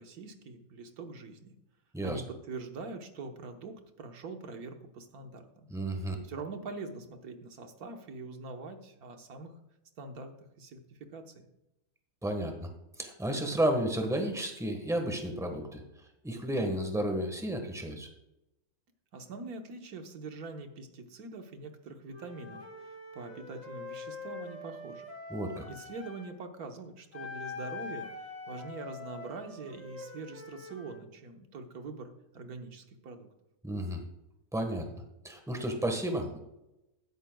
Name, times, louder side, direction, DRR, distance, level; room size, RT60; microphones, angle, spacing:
voice 1, 0.0-1.5 2.0-5.7 6.0-9.6 10.0-11.5 19.1-25.1 25.7-33.3, right 3 dB, 75° right, 5 dB, 1.7 m, -44 dB
voice 2, 5.7-6.1 12.2-12.7 13.0-15.8 16.2-18.1 25.3-25.6 33.6-34.0 34.5-34.9 35.2-36.4, right 1 dB, ahead, 4 dB, 1.2 m, -32 dB
Wind instrument woodwind instrument, 22.1-26.3 27.1-31.0, left 3 dB, 25° left, 2.2 m, -44 dB
15.5 x 11.0 x 2.3 m, 0.90 s
omnidirectional pair, 1.6 m